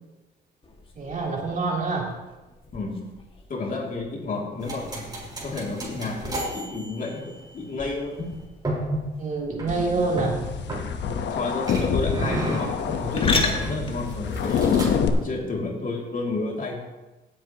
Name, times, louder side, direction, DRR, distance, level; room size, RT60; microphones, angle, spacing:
sound 1, 0.6-15.7, left 3 dB, 25° left, 1.9 m, -37 dB
voice 1, 0.9-2.1 9.2-10.5 15.6-15.7, right 3 dB, 40° right, -3 dB, 3.3 m, -26 dB
voice 2, 3.5-5.0 5.4-8.3 11.0-14.7 15.2-16.8, left 3 dB, 45° left, -1 dB, 2.6 m, -31 dB
sound 2, 4.6-7.6 8.6-9.1 9.6-9.7 10.2-11.3 11.7-15.1, right 1 dB, 20° right, 4.1 m, -33 dB
sound 3, 9.7-15.1, left 7 dB, 65° left, 1.0 m, -26 dB
16.0 x 8.6 x 2.9 m, 1.1 s
cardioid pair, 80°, 19 cm